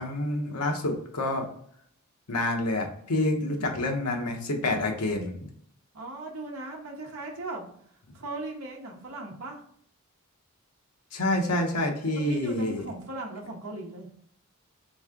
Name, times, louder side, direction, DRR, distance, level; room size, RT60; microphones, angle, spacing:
voice 1, 0.0-1.5 2.3-5.5 11.1-12.9, left 1 dB, 90° left, 2 dB, 0.9 m, -28 dB
voice 2, 3.4-3.8 5.9-7.7 8.1-9.6 12.2-14.1, right 2 dB, 65° right, -1 dB, 0.9 m, -38 dB
3.7 x 3.1 x 3.6 m, 0.64 s
head